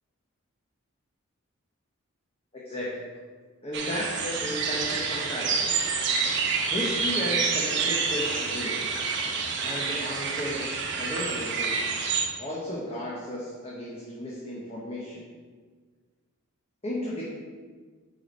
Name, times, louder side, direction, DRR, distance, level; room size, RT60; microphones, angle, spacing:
voice 1, 2.5-3.0 3.6-5.8 6.7-9.1 9.6-11.8 12.4-15.3 16.8-17.2, left 1 dB, 30° left, -6 dB, 1.2 m, -34 dB
sound 1, 3.7-12.2, right 5 dB, 60° right, 1.1 m, -28 dB
8.0 x 4.8 x 4.5 m, 1.5 s
head